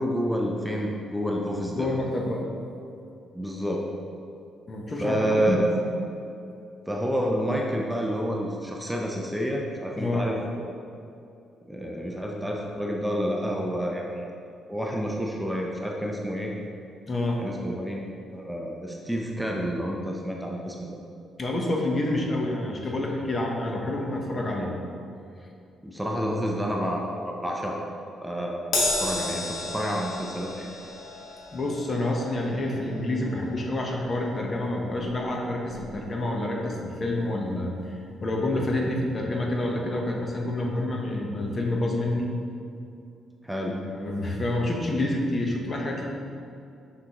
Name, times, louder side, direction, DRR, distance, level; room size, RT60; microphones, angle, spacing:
voice 1, 0.0-1.9 3.3-3.9 5.0-5.7 6.9-10.7 11.7-14.3 14.7-16.5 17.4-18.0 18.3-20.9 25.8-27.8 28.2-28.6 29.0-30.7 43.4-43.8, equal, 5° right, -1 dB, 0.6 m, -29 dB
voice 2, 1.7-2.4 4.7-5.6 10.0-10.3 17.1-17.4 21.4-24.7 31.5-42.3 43.6-46.1, left 1 dB, 35° left, 0 dB, 0.9 m, -28 dB
Crash cymbal, 28.7-35.4 35.7-35.9 37.0-37.1, left 2 dB, 70° left, 1.3 m, -33 dB
6.0 x 5.8 x 2.9 m, 2.6 s
cardioid pair, 90°, 0 cm